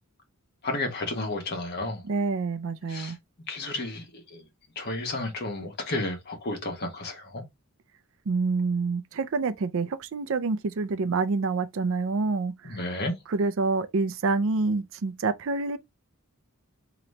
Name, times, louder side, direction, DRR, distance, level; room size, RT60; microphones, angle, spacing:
voice 1, 0.6-2.0 2.9-3.2 3.5-4.5 4.7-7.4 12.6-13.1, left 2 dB, 50° left, 1.3 m, -32 dB
voice 2, 2.1-3.2 8.3-12.8 13.3-15.8, right 3 dB, 60° right, 0.5 m, -27 dB
3.9 x 3.0 x 3.2 m
head